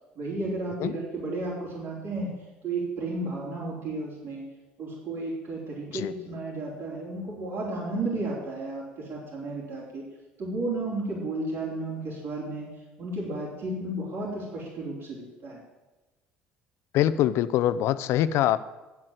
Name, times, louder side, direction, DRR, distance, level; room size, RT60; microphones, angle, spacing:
voice 1, 0.1-2.3 2.6-4.4 4.8-10.0 10.4-12.7 13.0-15.6, right 2 dB, 60° right, -7 dB, 4.4 m, -33 dB
voice 2, 16.9-18.6, left 12 dB, 70° left, 15 dB, 0.6 m, -24 dB
11.0 x 7.8 x 7.7 m, 1.1 s
supercardioid pair, 75°, 5 cm